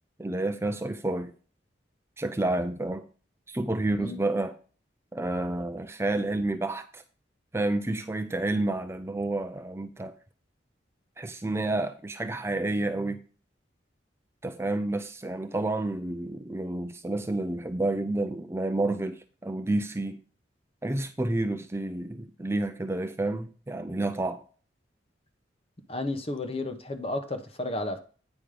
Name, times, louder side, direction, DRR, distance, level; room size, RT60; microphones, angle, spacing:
voice 1, 0.2-1.3 2.2-3.0 3.5-4.5 5.1-7.0 7.5-10.1 11.2-13.2 14.4-20.2 20.8-24.4, right 2 dB, 15° right, 0.5 m, -30 dB
voice 2, 25.9-28.0, left 2 dB, 35° left, 1.1 m, -32 dB
9.2 x 5.3 x 5.1 m
head